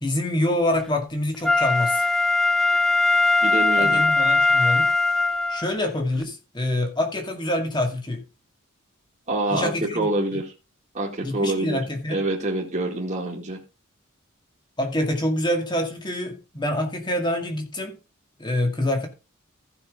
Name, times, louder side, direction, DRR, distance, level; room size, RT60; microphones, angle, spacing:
voice 1, 0.0-2.0 3.8-4.9 5.5-8.2 9.5-10.1 11.2-12.2 14.8-18.0 18.4-19.1, left 1 dB, 20° left, 2.1 m, -26 dB
Wind instrument woodwind instrument, 1.4-5.7 6.2-6.3, left 2 dB, 5° left, 0.4 m, -20 dB
voice 2, 3.4-4.0 9.3-10.5 10.9-11.8 12.1-13.6, right 2 dB, 35° right, 2.1 m, -26 dB
15.0 x 6.0 x 3.7 m
head